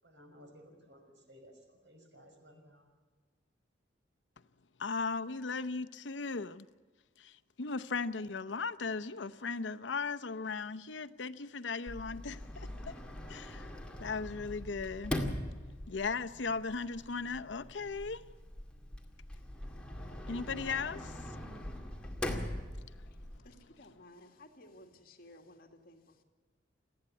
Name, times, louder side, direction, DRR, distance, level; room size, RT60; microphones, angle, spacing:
voice 1, 0.0-2.9, equal, 70° right, 5.6 m, -57 dB
voice 2, 4.8-6.7 7.2-13.0 13.3-13.7 14.0-15.2 15.9-18.2 20.3-21.2, left 4 dB, 80° left, 0.7 m, -37 dB
Sliding door, 11.9-23.4, left 1 dB, 5° left, 2.2 m, -42 dB
voice 3, 23.4-26.2, left 1 dB, 55° left, 2.4 m, -56 dB
28.5 x 9.6 x 9.7 m
head